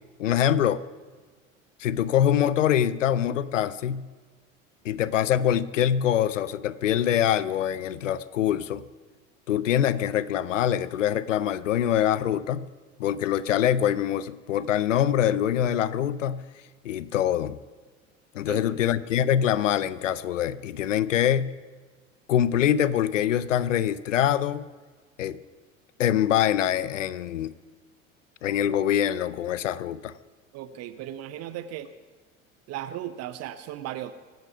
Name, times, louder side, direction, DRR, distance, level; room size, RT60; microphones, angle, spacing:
voice 1, 0.2-0.8 1.8-4.1 4.8-8.8 9.5-12.6 13.0-16.4 16.8-17.6 18.3-21.5 22.3-24.6 25.2-25.4 26.0-27.5 28.4-30.1, left 10 dB, 75° left, 18 dB, 0.7 m, -24 dB
voice 2, 18.5-18.8 30.5-31.9 32.7-34.1, right 12 dB, 40° right, 12 dB, 0.8 m, -36 dB
24.0 x 9.3 x 5.7 m, 1.4 s
figure-of-eight pair, 70°, 38 cm